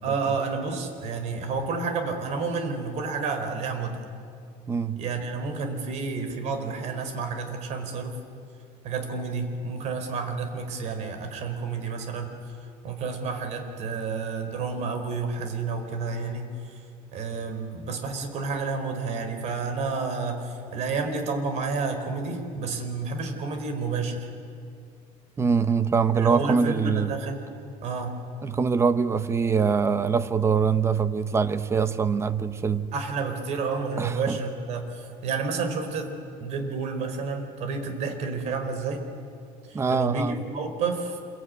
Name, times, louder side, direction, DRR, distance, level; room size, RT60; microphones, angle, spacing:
voice 1, 0.0-4.0 5.0-8.2 8.8-12.4 12.8-16.8 17.1-24.3 26.1-27.4 27.8-28.2 32.9-36.1 36.4-39.0 39.7-41.2, right 4 dB, 55° right, 7 dB, 4.4 m, -30 dB
voice 2, 4.7-5.0 25.4-27.1 28.4-32.9 34.0-34.4 39.7-40.4, right 5 dB, 20° right, 12 dB, 1.0 m, -23 dB
27.0 x 23.0 x 9.7 m, 2.4 s
cardioid pair, 150°, 14 cm